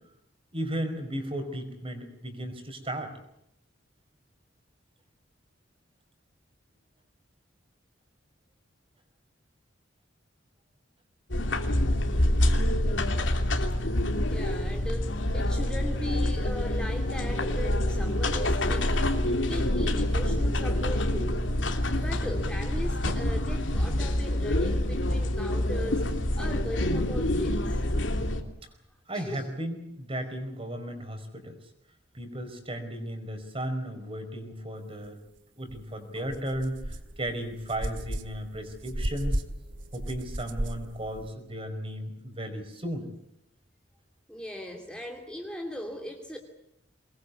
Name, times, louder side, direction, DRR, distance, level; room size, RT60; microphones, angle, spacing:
voice 1, 0.5-3.1 29.1-31.6 32.1-35.2 35.5-39.4 39.9-43.1, right 1 dB, 30° right, 7 dB, 4.9 m, -35 dB
sound 1, 11.3-28.4, left 1 dB, 80° left, 2.8 m, -26 dB
voice 2, 14.3-21.5 21.9-26.0 26.4-27.8 29.1-29.5 36.1-36.3 44.3-46.4, left 1 dB, 5° left, 3 dB, 2.5 m, -38 dB
sound 2, 35.7-35.8 36.2-41.3, right 1 dB, 80° right, 2.1 m, -35 dB
24.0 x 21.0 x 8.3 m, 0.79 s
head